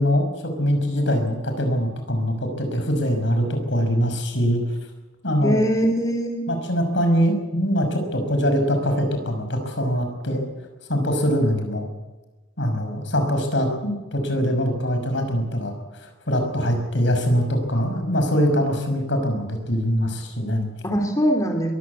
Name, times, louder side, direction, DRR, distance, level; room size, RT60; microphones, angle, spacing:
voice 1, 0.0-4.6 5.2-5.6 6.5-10.4 10.9-11.9 12.6-15.7 16.0-20.7, equal, 70° left, 5 dB, 5.7 m, -23 dB
voice 2, 5.4-6.4 20.8-21.7, equal, 20° left, 1 dB, 2.8 m, -22 dB
22.0 x 15.0 x 8.5 m, 1.1 s
head